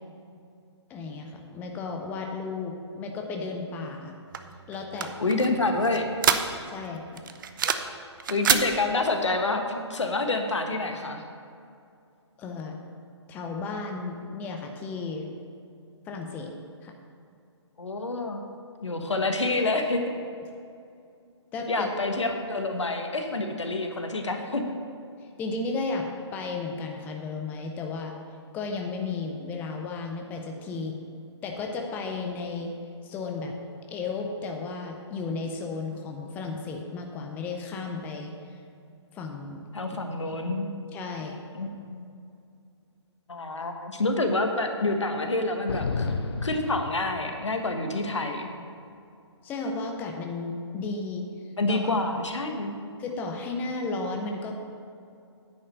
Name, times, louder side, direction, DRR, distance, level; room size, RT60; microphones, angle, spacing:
voice 1, 0.9-4.1 4.7-5.1 6.7-7.2 12.4-12.8 13.3-15.3 16.1-16.5 16.8-17.0 21.5-21.9 25.4-28.1 28.5-31.0 31.4-32.7 33.0-33.6 33.9-38.3 39.1-39.6 40.9-41.4 49.4-51.3 51.7-51.9 53.0-54.6, left 3 dB, 10° left, 2 dB, 0.5 m, -34 dB
sound 1, 4.3-6.8 7.2-8.0 8.2-8.7, right 8 dB, 45° right, 0.6 m, -26 dB
voice 2, 5.2-6.4 8.3-11.2 17.8-18.4 18.8-20.0 21.7-24.6 39.7-40.7 41.5-42.1 43.3-46.1 46.4-48.5 51.6-52.8, left 2 dB, 75° left, 5 dB, 1.3 m, -27 dB
sound 2, 45.7-47.6, left 4 dB, 60° left, 0.9 m, -31 dB
9.8 x 5.4 x 6.5 m, 2.5 s
figure-of-eight pair, 135°, 15 cm